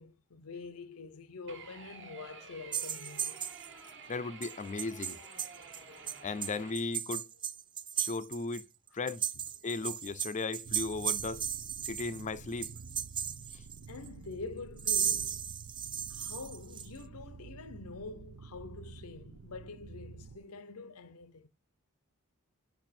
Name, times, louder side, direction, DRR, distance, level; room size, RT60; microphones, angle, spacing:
voice 1, 0.0-3.5 13.9-15.5 16.1-21.5, left 4 dB, 90° left, 0.8 m, -46 dB
sound 1, 1.5-6.7, right 4 dB, 60° right, 1.4 m, -51 dB
sound 2, 2.7-3.9 4.4-4.5 4.8-5.8 6.1-8.6 8.9-12.2 12.6-14.1 14.8-16.9, right 8 dB, 20° right, 0.3 m, -36 dB
voice 2, 4.1-5.2 6.2-7.3 8.0-8.7 8.9-9.3 9.6-11.4 11.8-12.7 13.5-13.6, left 3 dB, 35° left, 0.5 m, -36 dB
sound 3, 10.6-20.4, right 4 dB, 85° right, 0.6 m, -50 dB
5.6 x 4.5 x 4.2 m
head